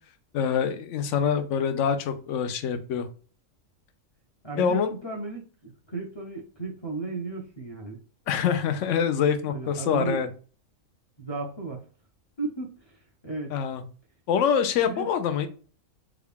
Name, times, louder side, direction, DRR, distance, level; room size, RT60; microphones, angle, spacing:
voice 1, 0.3-3.1 4.6-4.9 8.3-10.3 13.5-13.8 14.3-15.5, left 7 dB, 70° left, 8 dB, 0.9 m, -25 dB
voice 2, 4.4-8.0 9.5-10.3 11.2-11.8 12.4-13.5 14.8-15.1, right 3 dB, 25° left, -1 dB, 0.6 m, -35 dB
3.5 x 2.3 x 3.5 m, 0.38 s
omnidirectional pair, 1.4 m